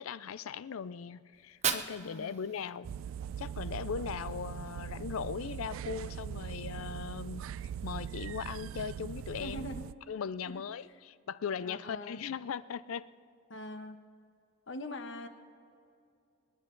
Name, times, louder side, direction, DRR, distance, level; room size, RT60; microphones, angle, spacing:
voice 1, 0.0-2.9 3.4-7.5 7.8-9.7 10.1-13.1, left 6 dB, 90° left, 17 dB, 0.4 m, -39 dB
Fire, 1.3-3.3, right 7 dB, 35° right, 0.8 m, -37 dB
voice 2, 2.0-2.3 9.4-9.8 10.5-10.6 11.6-12.2 13.5-14.0 14.7-15.3, left 1 dB, 65° left, 7 dB, 1.2 m, -42 dB
sound 1, 2.8-9.9, right 8 dB, 75° right, 0.3 m, -41 dB
26.5 x 10.0 x 3.9 m, 2.4 s
head